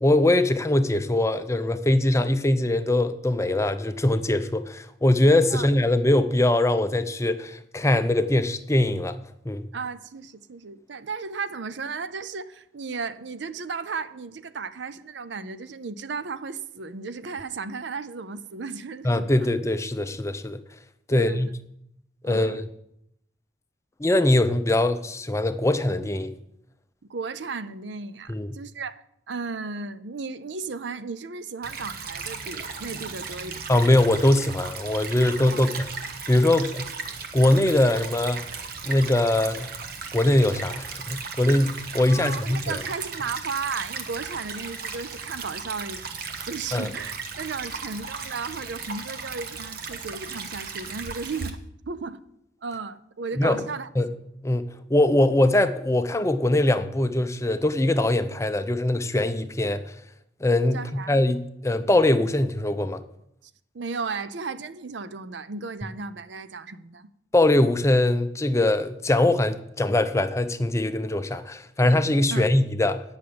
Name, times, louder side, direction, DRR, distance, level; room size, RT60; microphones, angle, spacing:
voice 1, 0.0-9.2 9.4-9.7 19.0-20.6 21.1-21.5 22.2-22.6 24.0-26.3 28.3-28.5 33.7-35.9 36.3-36.9 37.3-38.4 38.8-39.7 40.1-42.8 46.7-46.9 53.4-53.6 54.0-54.1 54.4-59.8 60.4-63.0 67.3-73.0, left 1 dB, 15° left, 0.5 m, -22 dB
voice 2, 9.7-19.3 21.1-21.4 22.3-22.6 27.1-33.7 35.5-35.7 42.0-46.1 46.4-52.2 52.6-53.9 60.7-61.1 63.7-67.1 72.3-72.5, right 4 dB, 85° right, 0.6 m, -35 dB
Stream / Trickle dribble, 31.6-51.5, right 5 dB, 55° right, 1.1 m, -36 dB
9.4 x 6.2 x 8.6 m
head